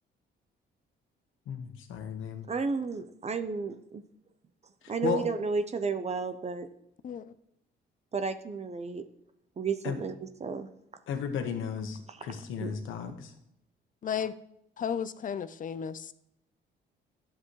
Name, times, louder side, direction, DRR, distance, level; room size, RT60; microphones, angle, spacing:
voice 1, 1.5-2.5 4.8-5.2 9.8-10.0 11.1-13.3, left 7 dB, 85° left, 6 dB, 1.3 m, -34 dB
voice 2, 2.5-4.0 4.9-6.7 8.1-9.1 9.6-10.7 12.2-12.3 12.6-12.7, right 4 dB, 35° right, 9 dB, 0.7 m, -32 dB
voice 3, 14.0-14.4 14.8-16.1, left 8 dB, 40° left, 14 dB, 0.6 m, -34 dB
11.5 x 7.6 x 3.2 m, 0.80 s
cardioid pair, 90°, 20 cm